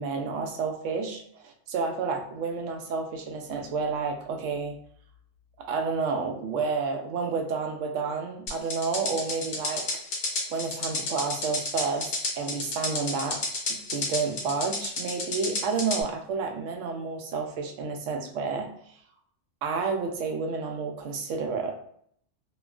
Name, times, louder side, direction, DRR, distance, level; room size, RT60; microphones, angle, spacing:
voice 1, 0.0-4.7 5.7-9.8 10.5-13.4 13.9-18.7 19.6-21.7, right 4 dB, 85° right, 3 dB, 0.9 m, -30 dB
sound 1, 8.5-16.0, left 2 dB, 50° left, 0.7 m, -31 dB
2.9 x 2.2 x 2.3 m, 0.65 s
omnidirectional pair, 1.2 m